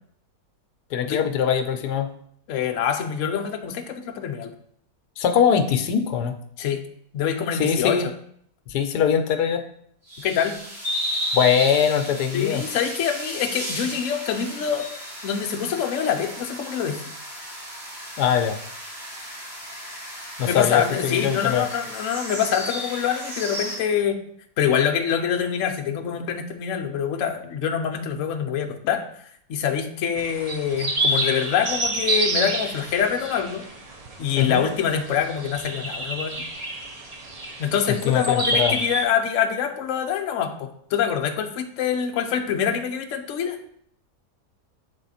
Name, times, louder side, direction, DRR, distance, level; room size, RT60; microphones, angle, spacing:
voice 1, 0.9-2.1 5.2-6.3 7.6-8.1 8.7-9.6 11.3-12.6 18.2-18.6 20.4-21.6 34.4-34.6 37.9-38.8, left 8 dB, 80° left, 7 dB, 1.2 m, -22 dB
voice 2, 2.5-4.5 6.6-6.8 7.1-8.0 10.2-10.6 12.3-14.9 15.2-17.0 20.4-24.2 24.6-29.0 29.5-33.6 34.2-36.4 37.6-43.6, left 8 dB, 60° left, 4 dB, 0.9 m, -25 dB
sound 1, 10.1-23.8, equal, 40° right, 2.0 m, -34 dB
sound 2, 30.2-39.0, right 1 dB, 65° right, 0.3 m, -28 dB
7.9 x 3.6 x 4.1 m, 0.66 s
omnidirectional pair, 1.7 m